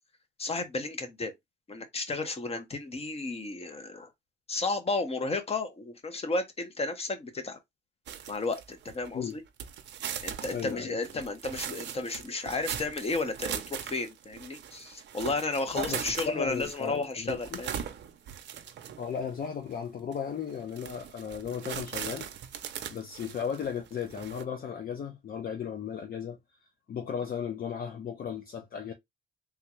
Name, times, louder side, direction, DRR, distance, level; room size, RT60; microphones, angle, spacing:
voice 1, 0.4-1.3 1.7-4.1 4.5-7.6 8.3-9.4 10.2-17.8, left 3 dB, 30° left, 1.0 m, -33 dB
sound 1, 8.1-9.3 9.6-19.2 19.7-19.8 20.1-20.2 20.6-24.4, right 9 dB, 65° right, 0.6 m, -39 dB
voice 2, 10.5-11.2 15.7-17.6 19.0-22.3 22.9-26.4 26.9-28.9, left 7 dB, 50° left, 0.6 m, -35 dB
3.6 x 2.3 x 2.9 m
cardioid pair, 90°, 20 cm